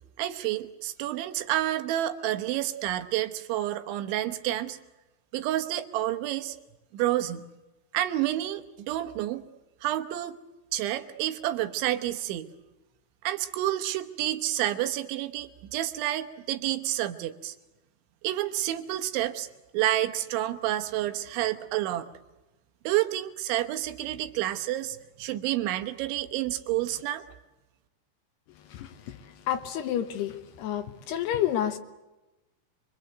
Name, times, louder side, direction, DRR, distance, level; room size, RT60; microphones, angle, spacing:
voice 1, 0.2-4.8 5.3-6.6 6.9-7.5 7.9-9.4 9.8-10.4 10.7-12.5 13.2-17.6 18.2-19.5 19.7-22.1 22.8-27.2, right 13 dB, 80° right, 9 dB, 3.5 m, -29 dB
voice 2, 28.7-29.2 29.5-31.8, left 10 dB, 70° left, 8 dB, 2.8 m, -30 dB
26.0 x 24.5 x 8.0 m, 1.0 s
omnidirectional pair, 5.5 m